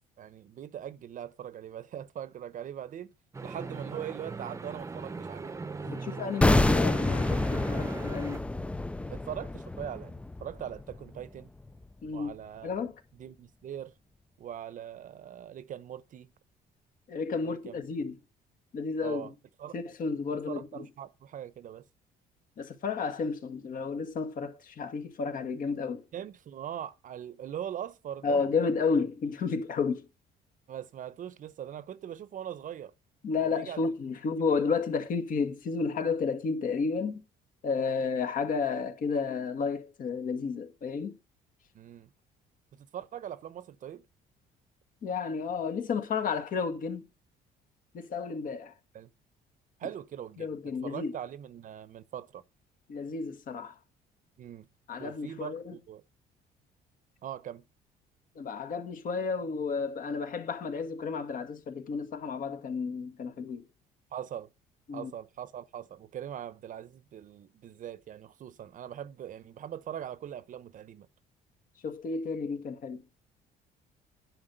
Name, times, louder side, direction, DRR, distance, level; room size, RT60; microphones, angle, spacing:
voice 1, 0.2-3.1 3.4-5.5 9.1-11.5 12.1-12.7 13.2-13.9 14.4-16.3 17.4-17.8 19.0-19.3 19.6-19.8 20.5-21.8 26.1-28.4 30.7-32.9 33.4-33.8 34.5-34.6 41.7-42.1 42.7-44.0 48.9-49.1 49.8-52.4 54.4-54.7 55.0-56.0 57.2-57.6 64.1-64.5 64.9-71.1, right 10 dB, 50° right, 0.8 m, -41 dB
sound 1, 3.3-8.4, right 4 dB, 15° right, 0.8 m, -40 dB
voice 2, 5.8-8.4 12.0-12.3 12.6-12.9 17.1-18.2 18.7-19.3 19.7-20.9 22.6-26.0 28.2-30.0 33.2-37.2 37.6-41.2 45.0-47.0 47.9-48.7 50.4-51.1 52.9-53.7 54.9-55.7 58.3-63.6 64.9-65.1 71.8-73.0, left 5 dB, 55° left, 1.8 m, -32 dB
sound 2, 6.4-11.4 11.7-11.8, left 2 dB, 5° left, 0.4 m, -28 dB
10.0 x 4.9 x 7.8 m
cardioid pair, 110°, 17 cm